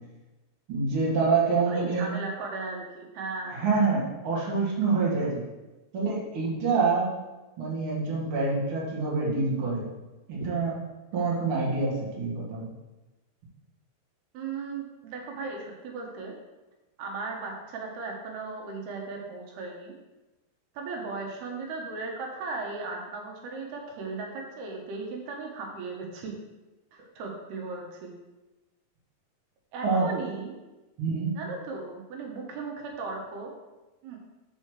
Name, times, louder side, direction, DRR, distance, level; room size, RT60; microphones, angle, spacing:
voice 1, 0.7-2.1 3.5-5.4 5.9-7.1 7.6-9.8 10.3-10.8 11.1-12.7 29.8-30.1 31.0-31.3, right 4 dB, 40° right, -5 dB, 2.2 m, -26 dB
voice 2, 1.7-3.7 14.3-16.3 17.0-19.9 20.8-26.3 26.9-28.1 29.7-30.6 31.4-33.5 34.0-34.2, right 3 dB, 80° right, 0 dB, 3.0 m, -36 dB
5.5 x 5.2 x 6.4 m, 1.1 s
omnidirectional pair, 4.6 m